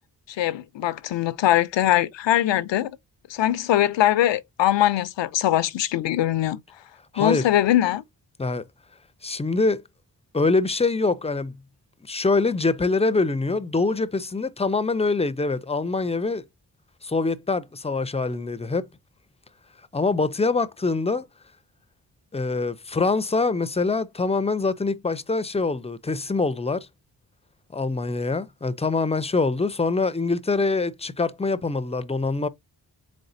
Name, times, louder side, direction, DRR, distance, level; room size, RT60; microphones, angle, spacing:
voice 1, 0.4-2.9 3.3-6.6 7.2-8.0, left 13 dB, 80° left, 0.5 m, -21 dB
voice 2, 7.1-7.5 8.4-8.6 9.2-9.8 10.3-11.6 12.1-16.4 17.0-18.8 19.9-21.3 22.3-26.9 27.7-32.5, left 3 dB, 15° left, 0.4 m, -24 dB
4.2 x 3.2 x 2.6 m
cardioid pair, 50°, 43 cm